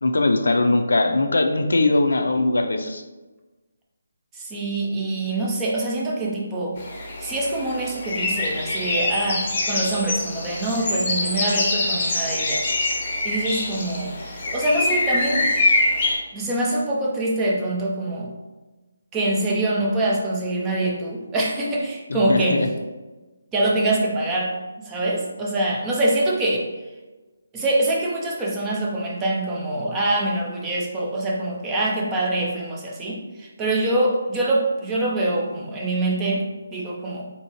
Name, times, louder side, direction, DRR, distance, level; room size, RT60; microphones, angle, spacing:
voice 1, 0.0-3.0 22.1-22.7, left 2 dB, 85° left, 6 dB, 0.4 m, -20 dB
voice 2, 4.3-6.8 7.2-12.7 13.2-15.5 16.3-18.3 19.1-22.6 23.5-26.7 27.5-37.3, right 1 dB, 10° right, -3 dB, 0.3 m, -24 dB
sound 1, 6.8-16.1, left 2 dB, 25° left, 0.6 m, -24 dB
3.7 x 2.7 x 2.8 m, 1.2 s
hypercardioid pair, 175°, 0 cm